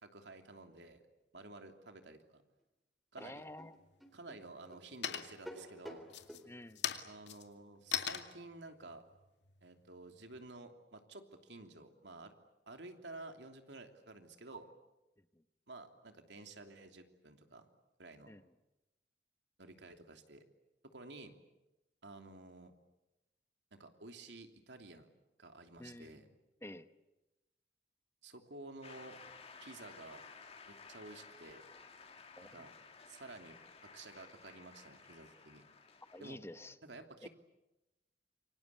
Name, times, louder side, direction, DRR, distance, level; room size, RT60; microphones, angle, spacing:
voice 1, 0.0-1.0 1.3-2.4 3.1-3.4 4.1-6.0 7.0-9.0 9.6-12.3 12.7-14.7 15.7-17.7 18.0-18.3 19.6-20.4 20.9-21.3 22.0-22.7 23.7-25.1 25.4-26.3 28.2-29.2 29.6-30.2 30.7-31.7 32.4-32.7 33.1-33.6 33.8-35.6 36.2-36.4 36.8-37.3, right 2 dB, 90° right, 5 dB, 3.0 m, -52 dB
sound 1, 2.6-2.7 3.2-6.5, equal, ahead, 3.7 m, -52 dB
voice 2, 3.2-3.8 6.4-6.8 18.3-18.4 25.8-26.3 26.6-26.9 32.4-32.6 36.1-36.8 37.2-37.3, left 1 dB, 15° left, 11 dB, 1.0 m, -50 dB
sound 2, 3.4-3.9 4.4-4.8 5.0-5.6 6.0-10.5, left 9 dB, 90° left, 2.2 m, -41 dB
Shout / Cheering / Applause, 28.8-36.3, left 5 dB, 35° left, 3.1 m, -56 dB
27.5 x 24.5 x 8.4 m, 0.97 s
head